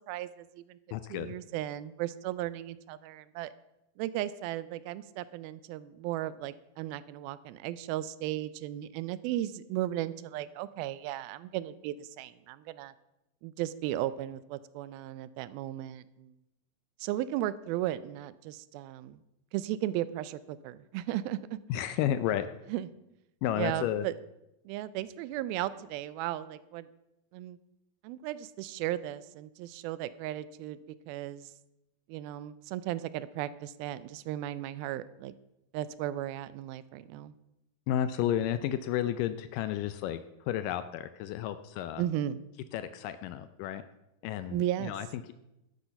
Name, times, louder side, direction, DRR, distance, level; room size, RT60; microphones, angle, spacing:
voice 1, 0.1-0.8 1.1-3.5 4.0-12.9 13.4-16.4 17.0-19.2 19.5-21.6 22.7-22.9 23.5-24.2 24.7-26.9 27.3-27.6 28.0-30.8 31.1-31.5 32.1-35.3 35.7-37.3 42.0-42.4 44.5-44.9, right 13 dB, 90° right, 16 dB, 2.4 m, -35 dB
voice 2, 0.9-1.4 21.7-22.5 23.4-24.1 37.9-40.2 40.5-42.0 42.7-43.8 44.2-45.3, left 11 dB, 80° left, 12 dB, 2.0 m, -32 dB
12.0 x 8.4 x 5.7 m, 0.90 s
omnidirectional pair, 4.2 m